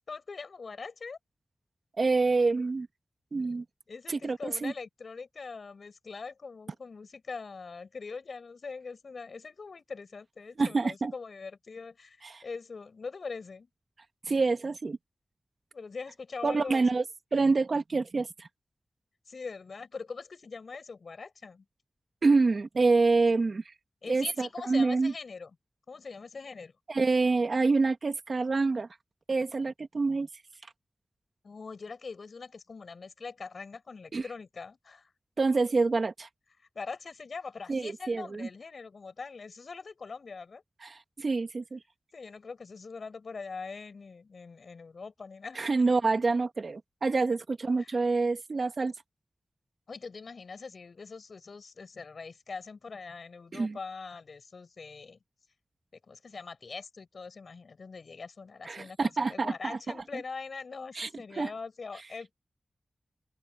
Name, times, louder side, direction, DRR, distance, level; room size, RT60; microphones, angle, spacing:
voice 1, 0.1-1.2 3.9-13.7 15.7-16.9 19.3-21.6 24.0-25.5 25.9-26.7 31.4-35.1 36.7-40.6 42.1-45.6 47.8-47.9 49.9-55.2 56.0-62.3, left 4 dB, 75° left, 5.7 m, -42 dB
voice 2, 2.0-2.9 3.3-3.6 4.1-4.7 10.6-11.1 12.2-12.4 14.3-15.0 16.4-17.0 17.3-18.5 22.2-23.6 24.1-25.1 26.9-28.9 29.3-30.3 34.1-34.2 35.4-36.3 37.7-38.5 40.8-41.8 45.6-48.9 53.5-53.8 58.7-59.8 61.0-61.1 61.4-61.5, right 3 dB, 60° right, 2.0 m, -27 dB
open air
wide cardioid pair, 70°, 0 cm